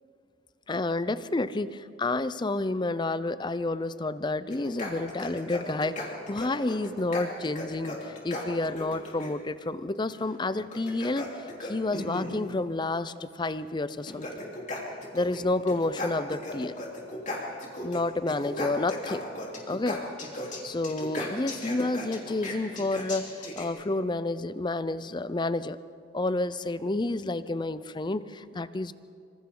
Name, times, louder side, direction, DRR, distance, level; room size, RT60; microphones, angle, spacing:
voice 1, 0.7-11.3 11.6-14.4 15.1-16.7 17.8-19.2 19.7-20.0 20.6-25.8 26.1-28.9, left 2 dB, 25° left, 14 dB, 0.5 m, -30 dB
sound 1, 4.5-9.3 10.6-12.4 13.4-13.5 13.9-15.4 15.7-18.0 18.3-23.7, left 1 dB, 40° left, 3.6 m, -36 dB
26.0 x 26.0 x 3.8 m, 2.3 s
head